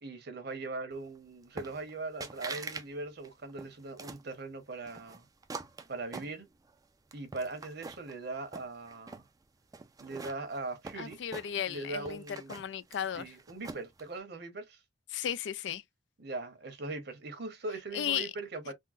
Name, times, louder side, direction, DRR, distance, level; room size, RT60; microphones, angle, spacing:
voice 1, 0.0-5.3 5.9-6.5 7.1-9.2 10.0-11.2 11.7-12.6 13.2-14.8 16.2-18.7, right 3 dB, 60° right, 1.0 m, -40 dB
sound 1, 1.6-1.9 2.2-2.9 3.2-4.3 4.9-6.7 7.1-8.2 8.5-9.3 9.7-11.8 12.1-14.0, right 3 dB, 20° right, 0.4 m, -44 dB
voice 2, 11.0-12.2 12.5-13.3 15.1-15.8 17.9-18.3, left 9 dB, 70° left, 0.4 m, -35 dB
3.7 x 2.1 x 2.5 m
head